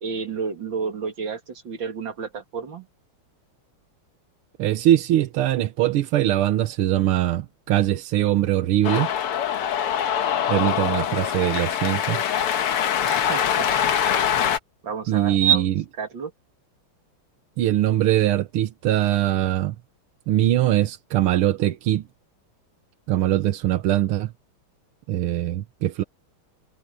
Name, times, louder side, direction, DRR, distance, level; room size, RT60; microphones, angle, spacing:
voice 1, 0.0-2.9 13.0-13.7 14.8-15.6 16.0-16.3, right 5 dB, 60° right, 2.9 m, -31 dB
voice 2, 4.6-9.1 10.5-12.2 15.1-15.9 17.6-19.8 20.3-22.1 23.1-24.3 25.1-26.0, right 13 dB, 85° right, 1.8 m, -21 dB
Cheering, 8.8-14.6, left 9 dB, 85° left, 2.2 m, -23 dB
omnidirectional pair, 2.4 m